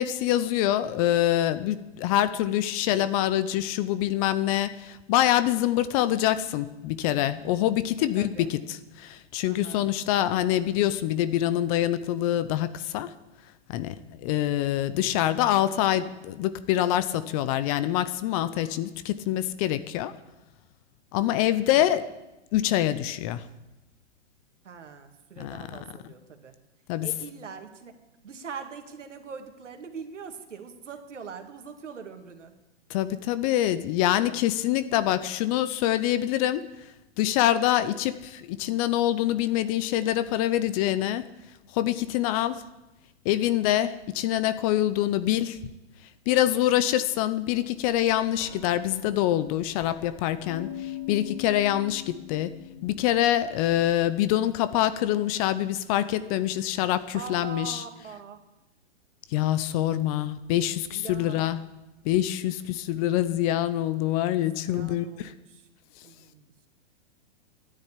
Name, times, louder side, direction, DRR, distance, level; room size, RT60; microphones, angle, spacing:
voice 1, 0.0-13.1 13.7-20.1 21.1-22.1 22.5-23.4 25.4-25.8 26.9-27.1 32.9-36.6 37.2-41.3 41.7-42.6 43.2-45.6 46.3-52.5 52.8-57.8 59.3-61.6 62.0-65.3, left 13 dB, 30° left, 15 dB, 0.7 m, -25 dB
voice 2, 8.2-8.5 9.4-9.9 21.6-22.1 24.6-26.5 27.0-27.9 28.2-32.5 57.1-58.4 60.8-61.5 62.4-62.6 64.4-65.7 66.0-66.5, right 6 dB, 85° right, 5 dB, 2.3 m, -42 dB
Glass, 47.8-53.9, left 12 dB, 50° left, 3.0 m, -42 dB
12.5 x 10.0 x 9.9 m, 1.0 s
hypercardioid pair, 135°, 35 cm